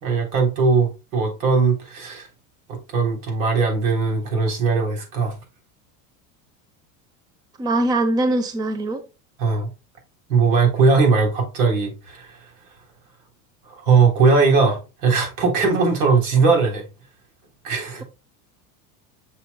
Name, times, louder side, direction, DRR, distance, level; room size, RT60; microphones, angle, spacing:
voice 1, 0.0-2.3 2.7-5.4 9.4-9.7 10.3-12.4 13.6-16.8 17.6-18.0, right 4 dB, 85° right, 3.5 m, -19 dB
voice 2, 7.6-9.0, right 2 dB, 10° right, 0.6 m, -22 dB
7.0 x 6.3 x 2.2 m
supercardioid pair, 135°, 42 cm